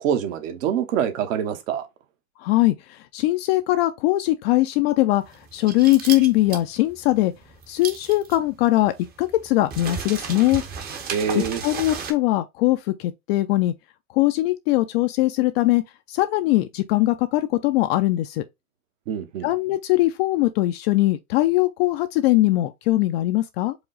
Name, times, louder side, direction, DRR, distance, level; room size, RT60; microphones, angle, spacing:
voice 1, 0.0-1.9 11.1-11.6 19.1-19.5, right 8 dB, 65° right, 1.2 m, -25 dB
voice 2, 2.4-7.3 7.7-8.9 9.2-10.6 11.3-13.7 14.1-15.8 16.1-18.4 19.4-23.8, left 17 dB, 45° left, 0.4 m, -21 dB
sound 1, 5.2-12.1, right 6 dB, 20° right, 0.7 m, -34 dB
4.9 x 2.2 x 3.9 m
supercardioid pair, 135°, 43 cm